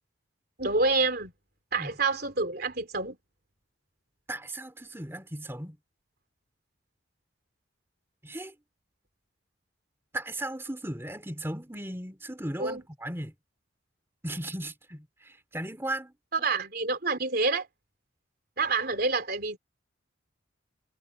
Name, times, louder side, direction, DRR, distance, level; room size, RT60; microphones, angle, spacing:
voice 1, 0.6-1.3 1.7-3.2 12.6-12.8 16.3-17.7 18.6-19.6, right 3 dB, 50° right, 3.6 m, -27 dB
voice 2, 4.3-5.8 8.2-8.5 10.1-13.3 14.2-16.1, right 1 dB, 10° right, 2.8 m, -36 dB
head